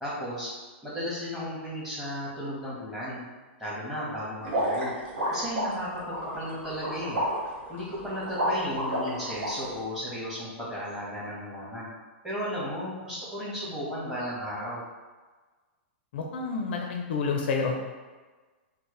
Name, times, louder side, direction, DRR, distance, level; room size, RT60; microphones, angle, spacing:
voice 1, 0.0-0.5 0.8-3.2 3.6-4.9 5.3-7.2 7.7-11.9 12.2-14.8, equal, 5° right, -8 dB, 1.4 m, -34 dB
sound 1, 4.4-9.5, equal, 65° right, 1.5 m, -30 dB
voice 2, 16.1-17.8, left 4 dB, 65° left, 2 dB, 0.5 m, -29 dB
4.3 x 2.1 x 3.2 m, 1.3 s
hypercardioid pair, 135°, 6 cm